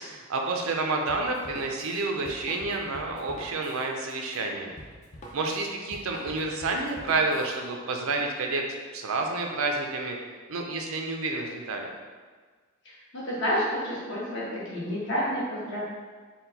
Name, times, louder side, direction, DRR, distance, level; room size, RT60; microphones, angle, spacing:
voice 1, 0.0-4.7 5.3-8.6 8.9-10.2 10.5-11.9, right 3 dB, 80° right, 2 dB, 0.5 m, -29 dB
Drum kit, 1.1-7.6, equal, 35° left, 0.5 m, -45 dB
voice 2, 12.8-15.8, equal, 60° left, -8 dB, 1.5 m, -30 dB
4.3 x 2.2 x 4.0 m, 1.5 s
head